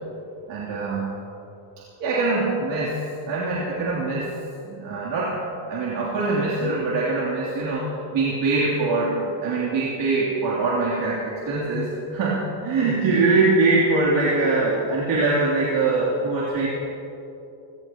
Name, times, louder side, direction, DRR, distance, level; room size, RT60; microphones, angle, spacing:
voice 1, 0.5-1.1 2.0-3.0 3.3-4.3 4.6-5.4 5.7-16.7, right 3 dB, 60° right, -7 dB, 3.4 m, -23 dB
24.0 x 17.5 x 3.0 m, 2.9 s
cardioid pair, 100°, 50 cm